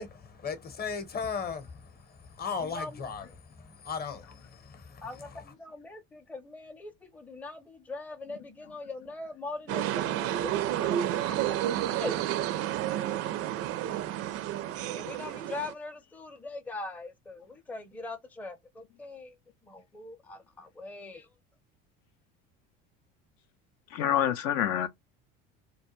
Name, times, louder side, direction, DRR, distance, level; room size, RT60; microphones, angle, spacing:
voice 1, 0.0-5.4, left 5 dB, 30° left, 0.8 m, -37 dB
voice 2, 2.6-3.0 5.0-11.7 12.0-12.2 14.9-19.4 19.6-21.3, left 3 dB, 5° left, 0.5 m, -41 dB
sound 1, 9.7-15.7, right 12 dB, 50° right, 0.4 m, -30 dB
voice 3, 23.9-24.9, left 10 dB, 65° left, 0.4 m, -26 dB
2.3 x 2.1 x 2.9 m
hypercardioid pair, 80°, 30 cm